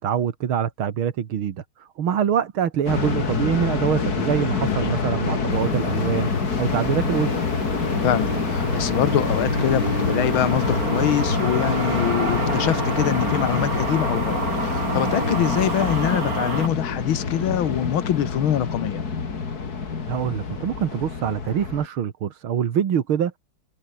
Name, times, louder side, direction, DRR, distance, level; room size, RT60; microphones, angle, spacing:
voice 1, 0.0-6.3 6.6-7.4 20.1-23.4, right 8 dB, 75° right, 2.4 m, -25 dB
sound 1, 2.9-21.9, left 5 dB, 45° left, 2.8 m, -26 dB
sound 2, 5.5-16.7, right 3 dB, 40° right, 4.5 m, -29 dB
voice 2, 8.0-19.0, left 11 dB, 70° left, 1.9 m, -24 dB
omnidirectional pair, 2.3 m